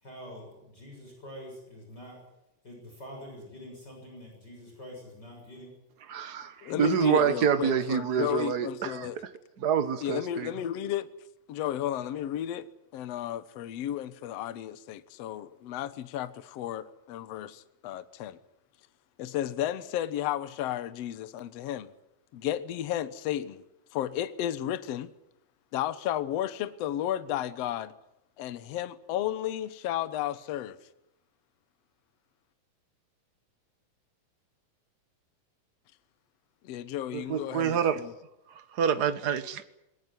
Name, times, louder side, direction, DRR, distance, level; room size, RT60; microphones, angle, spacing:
voice 1, 0.0-2.2 2.6-5.8, equal, 30° left, 7.5 m, -46 dB
voice 2, 6.1-9.3 9.6-10.5 37.1-38.0 38.5-39.6, right 8 dB, 55° right, 1.1 m, -27 dB
voice 3, 6.6-9.2 10.0-11.1 11.5-12.7 12.9-18.4 19.2-21.9 22.3-23.6 23.9-25.1 25.7-27.9 28.4-30.8 36.6-38.1, left 11 dB, 60° left, 1.9 m, -33 dB
21.5 x 19.0 x 9.9 m
omnidirectional pair, 3.7 m